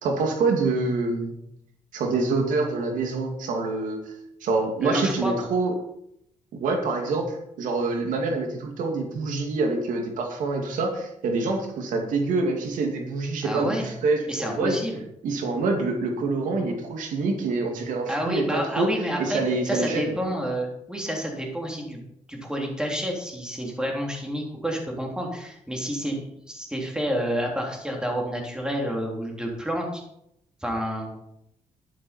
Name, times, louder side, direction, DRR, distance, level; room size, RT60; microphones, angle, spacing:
voice 1, 0.0-1.3 1.9-4.0 4.4-5.7 6.5-14.8 15.2-18.9 19.2-20.1, right 3 dB, 90° right, 3 dB, 2.5 m, -26 dB
voice 2, 4.8-5.3 13.4-13.9 14.3-15.0 18.1-22.0 22.3-30.0 30.6-31.1, equal, 5° right, 0 dB, 3.5 m, -29 dB
12.0 x 11.5 x 4.6 m, 0.77 s
cardioid pair, 125°, 13 cm